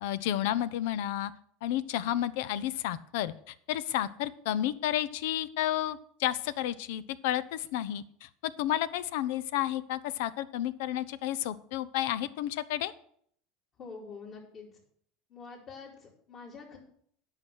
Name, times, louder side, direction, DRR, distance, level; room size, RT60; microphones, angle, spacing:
voice 1, 0.0-1.3 1.6-12.9, left 12 dB, 75° left, 17 dB, 0.7 m, -31 dB
voice 2, 13.8-14.7 15.3-16.8, left 4 dB, 45° left, -8 dB, 3.8 m, -46 dB
9.7 x 5.9 x 8.0 m, 0.63 s
supercardioid pair, 110°, 0 cm